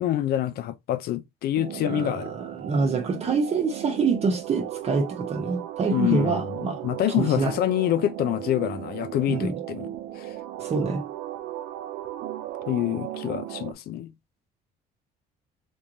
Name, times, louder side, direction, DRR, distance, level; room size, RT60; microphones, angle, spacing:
voice 1, 0.0-2.3 5.9-9.9 10.2-10.3 12.7-14.1, left 13 dB, 65° left, 0.5 m, -26 dB
sound 1, 1.5-13.7, right 13 dB, 85° right, 0.5 m, -36 dB
voice 2, 1.8-6.8 7.2-7.5 9.3-9.6 10.6-11.0, right 4 dB, 40° right, 0.9 m, -26 dB
3.5 x 3.0 x 2.6 m
cardioid pair, 110°, 17 cm